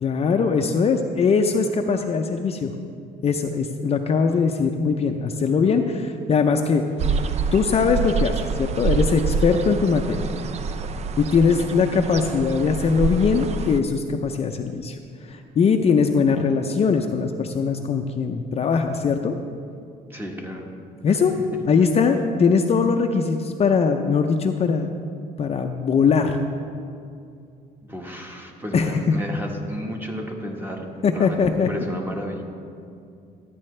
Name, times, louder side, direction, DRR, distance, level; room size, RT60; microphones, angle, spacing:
voice 1, 0.0-2.7 3.2-6.8 7.5-10.3 11.2-15.0 15.3-19.3 21.0-21.4 21.7-24.9 25.4-26.4 28.7-29.2 31.0-31.7, left 5 dB, 35° left, 5 dB, 0.5 m, -21 dB
sound 1, 7.0-13.8, right 4 dB, 40° right, 0.4 m, -26 dB
voice 2, 20.1-20.6 21.1-21.2 27.8-32.4, equal, 10° right, 1 dB, 1.3 m, -32 dB
13.5 x 9.3 x 3.3 m, 2.4 s
cardioid pair, 110°, 17 cm